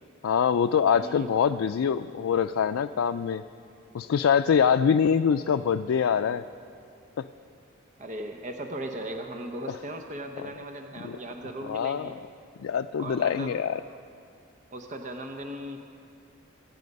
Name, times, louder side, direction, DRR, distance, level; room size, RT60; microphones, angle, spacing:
voice 1, 0.2-3.4 3.9-6.4 7.2-7.3 9.7-9.8 10.4-10.5 11.0-11.2 11.6-12.1 12.6-13.8, left 7 dB, 85° left, 9 dB, 0.3 m, -24 dB
voice 2, 0.9-1.3 8.0-12.1 13.0-13.5 14.7-15.8, right 1 dB, 35° right, 4 dB, 0.7 m, -37 dB
25.0 x 9.1 x 5.3 m, 2.5 s
head